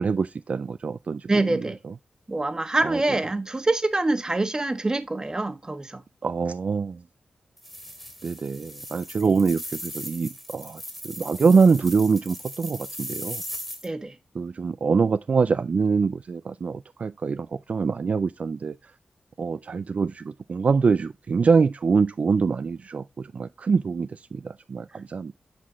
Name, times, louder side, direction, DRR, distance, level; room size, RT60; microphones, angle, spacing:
voice 1, 0.0-1.6 2.8-3.0 6.2-7.0 8.2-13.4 14.4-18.8 19.4-20.2 20.5-25.3, right 5 dB, 50° right, 0.3 m, -24 dB
voice 2, 1.3-1.8 2.3-6.0 9.2-9.4 13.8-14.1, right 2 dB, 25° right, 1.3 m, -25 dB
sound 1, 7.6-13.9, equal, 5° left, 2.2 m, -38 dB
12.0 x 4.2 x 3.0 m
cardioid pair, 80°, 3 cm